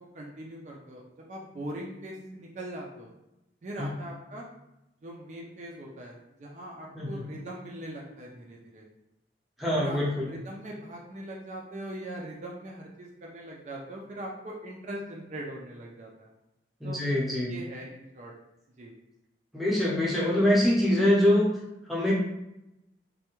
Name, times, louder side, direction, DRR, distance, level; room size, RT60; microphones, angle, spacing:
voice 1, 0.1-1.0 1.3-3.1 3.6-4.5 5.0-8.8 9.7-16.3 16.8-17.0 17.4-18.3 18.8-19.0, right 1 dB, 40° right, -2 dB, 0.4 m, -41 dB
voice 2, 9.6-10.3 16.8-17.5 19.5-21.5 21.9-22.1, left 1 dB, ahead, -6 dB, 0.6 m, -24 dB
3.2 x 2.2 x 3.0 m, 0.91 s
head